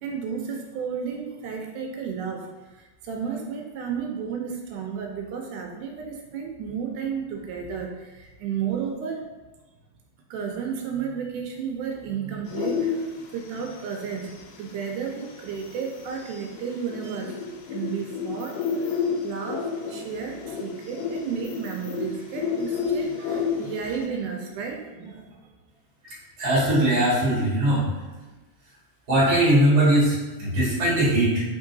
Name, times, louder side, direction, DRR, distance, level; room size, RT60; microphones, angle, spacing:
voice 1, 0.0-2.5 2.8-9.3 10.3-13.1 13.3-17.4 17.7-18.6 18.8-18.9 19.2-25.4, right 6 dB, 85° right, 1 dB, 2.0 m, -32 dB
sound 1, 12.5-24.1, left 6 dB, 85° left, 2.2 m, -31 dB
voice 2, 26.0-27.8 29.1-31.4, right 1 dB, 40° right, -8 dB, 1.4 m, -21 dB
4.3 x 3.7 x 2.6 m, 1.2 s
omnidirectional pair, 3.6 m